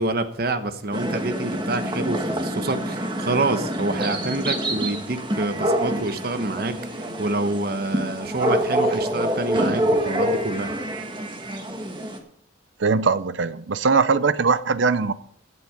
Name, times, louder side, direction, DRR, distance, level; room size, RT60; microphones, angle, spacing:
voice 1, 0.0-10.7, right 2 dB, 50° right, 10 dB, 1.1 m, -27 dB
sound 1, 0.9-12.2, right 1 dB, 25° right, 1.5 m, -26 dB
voice 2, 12.8-15.1, right 4 dB, 65° right, 15 dB, 0.6 m, -21 dB
15.5 x 7.9 x 5.2 m, 0.63 s
head